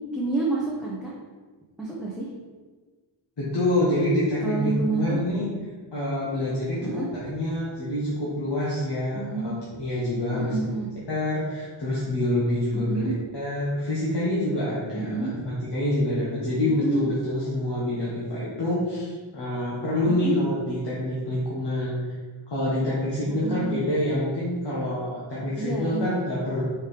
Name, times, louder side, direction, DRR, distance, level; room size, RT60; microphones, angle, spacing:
voice 1, 0.1-1.1 1.8-2.3 4.4-5.2 6.8-7.1 9.1-9.6 10.3-10.9 12.7-13.1 14.9-15.3 16.6-17.1 20.0-20.4 23.3-23.9 25.6-26.2, right 2 dB, ahead, -6 dB, 1.0 m, -29 dB
voice 2, 3.4-5.5 5.9-9.5 9.8-10.6 11.1-13.0 13.3-22.1 22.5-26.6, left 1 dB, 55° left, -8 dB, 1.6 m, -26 dB
5.2 x 4.6 x 5.1 m, 1.4 s
wide cardioid pair, 130°, 48 cm